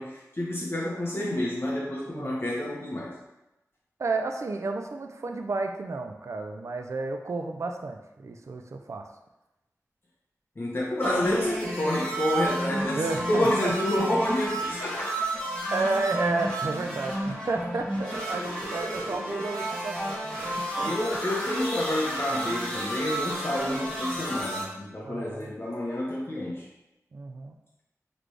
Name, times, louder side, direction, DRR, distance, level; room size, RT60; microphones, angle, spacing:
voice 1, 0.0-3.1 10.6-15.5 20.8-26.6, left 1 dB, 45° left, -6 dB, 0.9 m, -29 dB
voice 2, 4.0-9.1 13.0-13.7 15.7-20.4 20.8-21.2 23.5-24.0 25.0-25.5 27.1-27.6, right 3 dB, 60° right, 4 dB, 0.4 m, -32 dB
sound 1, 11.0-24.6, right 1 dB, 15° left, 1.3 m, -32 dB
4.0 x 3.1 x 3.2 m, 0.95 s
wide cardioid pair, 75°, 6 cm